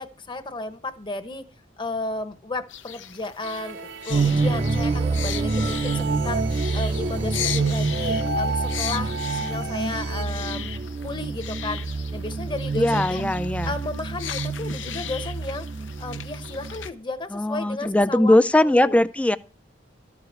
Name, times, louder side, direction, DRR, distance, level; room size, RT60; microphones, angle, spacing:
voice 1, 0.0-1.5 1.8-10.7 11.0-11.8 12.1-13.2 13.6-15.7 16.0-18.4 18.6-19.0, left 3 dB, 25° left, 1.0 m, -33 dB
sound 1, 2.7-16.9, left 10 dB, 85° left, 0.8 m, -37 dB
sound 2, 3.4-10.2, right 3 dB, 70° right, 1.0 m, -33 dB
sound 3, 4.1-16.9, right 3 dB, 35° right, 0.6 m, -27 dB
voice 2, 12.7-13.7 17.3-19.4, left 1 dB, 5° left, 0.4 m, -20 dB
13.5 x 4.9 x 8.2 m
head